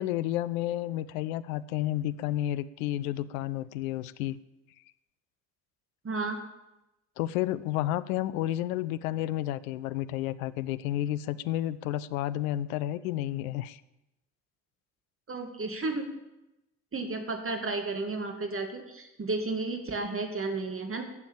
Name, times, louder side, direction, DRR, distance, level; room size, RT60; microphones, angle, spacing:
voice 1, 0.0-4.4 7.2-13.8, left 13 dB, 75° left, 16 dB, 0.7 m, -31 dB
voice 2, 6.0-6.4 15.3-16.1 16.9-21.0, right 3 dB, 30° right, 5 dB, 2.5 m, -32 dB
14.0 x 7.2 x 8.9 m, 0.94 s
hypercardioid pair, 50°, 42 cm